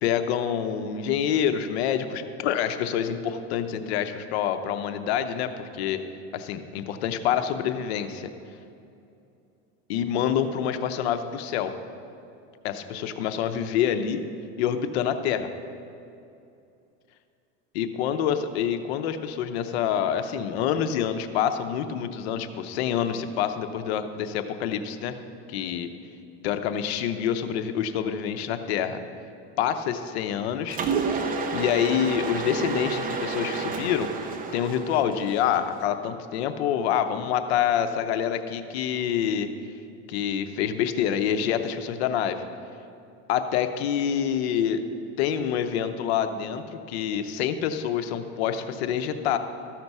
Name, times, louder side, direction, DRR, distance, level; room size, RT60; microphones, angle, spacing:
voice 1, 0.0-6.0 6.3-8.3 9.9-11.7 12.6-14.2 14.6-15.5 17.7-25.1 25.5-25.9 26.4-29.0 29.6-31.1 31.5-39.5 40.1-42.4 43.3-44.8 45.2-49.4, left 9 dB, 90° left, 9 dB, 0.8 m, -27 dB
Mechanisms, 30.7-35.8, right 4 dB, 25° right, 0.8 m, -30 dB
14.0 x 6.0 x 5.4 m, 2.6 s
supercardioid pair, 135°, 31 cm